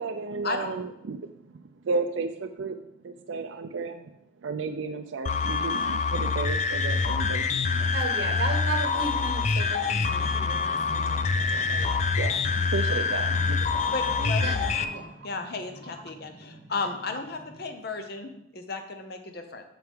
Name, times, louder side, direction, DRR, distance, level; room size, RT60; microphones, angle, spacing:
voice 1, 0.0-7.9 11.2-11.5 12.2-14.5 14.9-15.1 15.9-16.0, right 4 dB, 75° right, 6 dB, 0.4 m, -34 dB
sound 1, 5.2-14.8, left 4 dB, 35° left, 0.4 m, -26 dB
voice 2, 7.9-12.1 14.4-15.1, right 2 dB, 55° right, 3 dB, 0.9 m, -35 dB
sound 2, 10.0-18.4, right 1 dB, 10° right, 0.9 m, -47 dB
voice 3, 13.9-14.4 14.8-14.9 15.2-19.6, left 3 dB, 50° left, 6 dB, 0.8 m, -34 dB
7.8 x 6.8 x 3.6 m, 0.82 s
head